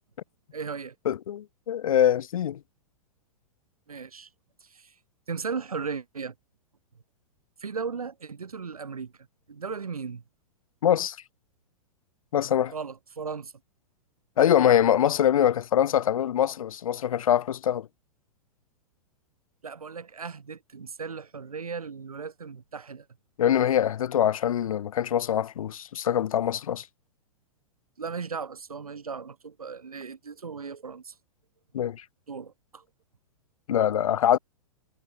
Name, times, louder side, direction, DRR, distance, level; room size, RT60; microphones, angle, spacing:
voice 1, 0.5-0.9 3.9-4.3 4.6-4.9 5.3-6.3 7.6-9.1 9.5-10.2 12.7-13.5 19.6-23.1 28.0-31.1 32.3-32.8, right 5 dB, 80° right, 3.4 m, -36 dB
voice 2, 1.1-2.6 10.8-11.2 12.3-12.7 14.4-17.9 23.4-26.9 31.7-32.0 33.7-34.4, left 10 dB, 70° left, 0.5 m, -23 dB
figure-of-eight pair, 105°, 18 cm